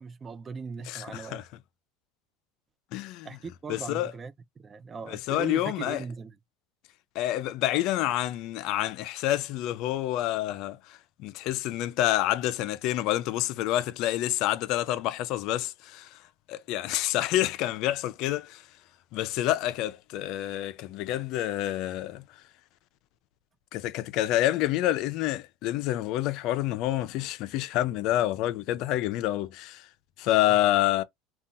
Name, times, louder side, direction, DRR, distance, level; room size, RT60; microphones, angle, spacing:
voice 1, 0.0-1.4 3.2-6.4 30.5-30.6, right 5 dB, 25° right, 0.3 m, -39 dB
voice 2, 0.9-1.4 2.9-3.3 3.7-4.1 5.1-6.0 7.2-16.2 16.5-18.6 19.1-22.2 23.7-29.9 30.2-31.0, left 14 dB, 60° left, 0.3 m, -28 dB
2.7 x 2.2 x 2.5 m
supercardioid pair, 110°, 0 cm